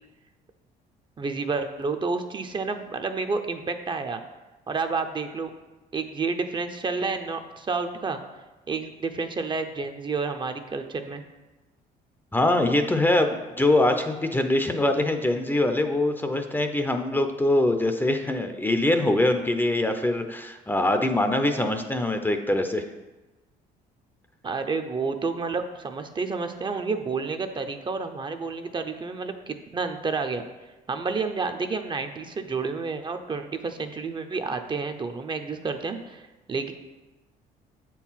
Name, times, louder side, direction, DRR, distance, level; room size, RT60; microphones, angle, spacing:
voice 1, 1.2-4.2 4.7-5.5 5.9-8.2 8.7-11.2 24.4-30.4 30.9-36.7, right 4 dB, 30° right, 7 dB, 0.6 m, -30 dB
voice 2, 12.3-22.9, left 1 dB, 10° left, 6 dB, 0.6 m, -23 dB
7.7 x 4.6 x 5.7 m, 1.1 s
cardioid pair, 110°, 17 cm